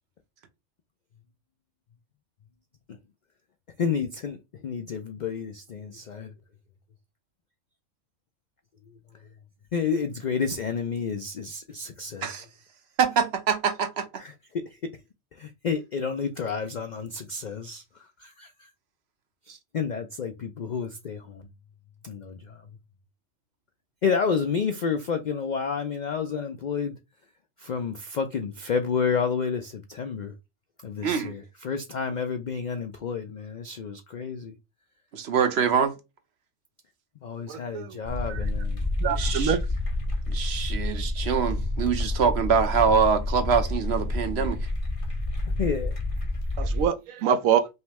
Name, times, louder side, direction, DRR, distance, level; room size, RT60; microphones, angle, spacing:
voice 1, 3.8-4.4 4.6-6.3 9.7-12.4 14.2-14.6 15.4-17.8 18.2-18.7 19.7-21.4 22.0-22.6 24.0-26.9 27.6-30.3 30.8-34.5 37.2-38.8 45.6-45.9, left 6 dB, 80° left, 0.4 m, -30 dB
voice 2, 13.0-14.1 19.5-19.6 31.0-31.3 35.1-36.0 39.1-39.6 40.3-44.6, right 6 dB, 55° right, 1.0 m, -24 dB
voice 3, 37.5-38.0 38.3-38.4 39.0-39.6 46.6-47.7, right 8 dB, 80° right, 1.0 m, -25 dB
sound 1, 38.0-46.9, left 2 dB, 30° left, 0.9 m, -29 dB
5.5 x 2.1 x 3.4 m
omnidirectional pair, 1.4 m